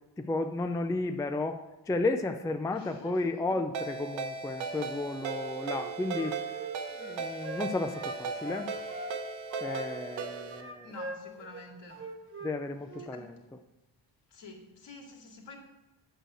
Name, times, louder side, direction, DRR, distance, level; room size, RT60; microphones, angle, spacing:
voice 1, 0.2-1.6 1.9-6.6 7.0-8.7 9.6-10.9 12.4-13.4, left 2 dB, 10° left, 7 dB, 0.4 m, -33 dB
voice 2, 2.7-3.1 3.5-3.6 10.8-12.1 13.1-13.3 14.3-15.6, left 3 dB, 65° left, 1 dB, 2.4 m, -48 dB
Ringtone, 3.7-10.6, right 5 dB, 80° right, 1.2 m, -37 dB
Wind instrument woodwind instrument, 5.7-9.1 9.5-12.6 12.9-13.1, right 2 dB, 25° right, 1.4 m, -42 dB
8.0 x 6.5 x 7.7 m, 1.0 s
cardioid pair, 125°, 46 cm